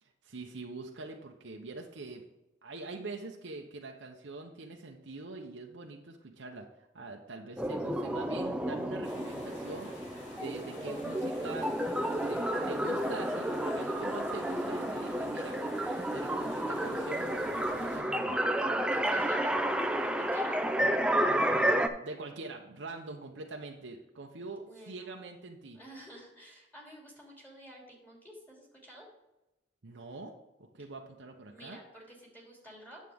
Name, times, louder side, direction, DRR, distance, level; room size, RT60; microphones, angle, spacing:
voice 1, 0.0-2.2 2.6-6.7 6.9-10.0 10.3-11.7 12.3-15.6 16.1-18.4 22.0-25.8 29.8-30.3 30.6-31.8, right 3 dB, 80° right, 1 dB, 0.9 m, -44 dB
sound 1, 7.6-21.9, right 1 dB, 5° right, 0.5 m, -31 dB
sound 2, 9.0-18.0, left 1 dB, 80° left, 3.3 m, -50 dB
voice 2, 18.8-19.6 20.0-20.6 24.6-25.1 25.7-29.1 31.5-33.0, equal, 10° left, -2 dB, 2.9 m, -51 dB
9.5 x 7.3 x 3.6 m, 0.95 s
head